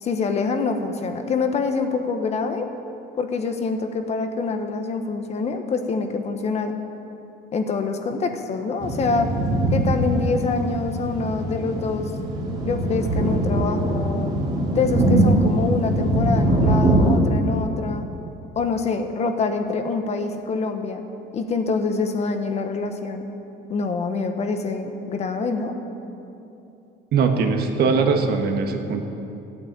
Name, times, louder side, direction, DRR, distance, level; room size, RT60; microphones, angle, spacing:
voice 1, 0.0-2.7 3.2-6.7 7.5-9.3 9.7-12.1 12.6-14.3 14.7-18.1 18.6-21.0 21.3-23.3 23.7-25.7, left 4 dB, 35° left, 6 dB, 1.0 m, -25 dB
sound 1, 8.8-17.2, right 1 dB, 25° right, 2.1 m, -22 dB
voice 2, 27.1-29.0, right 5 dB, 60° right, 4 dB, 1.5 m, -21 dB
14.0 x 9.0 x 8.6 m, 2.8 s
cardioid pair, 155°, 19 cm